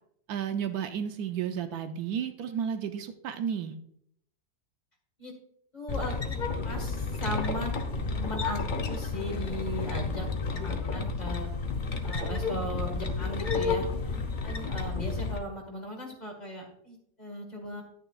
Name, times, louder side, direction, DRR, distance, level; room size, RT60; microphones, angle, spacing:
voice 1, 0.3-3.7, right 8 dB, 75° right, 8 dB, 1.1 m, -32 dB
voice 2, 5.7-6.4 6.6-7.7 8.1-10.3 10.5-11.5 12.0-17.8, equal, 25° left, 1 dB, 1.7 m, -38 dB
sound 1, 5.9-15.4, left 4 dB, 45° left, 0.7 m, -31 dB
11.0 x 8.9 x 2.4 m, 0.71 s
omnidirectional pair, 1.7 m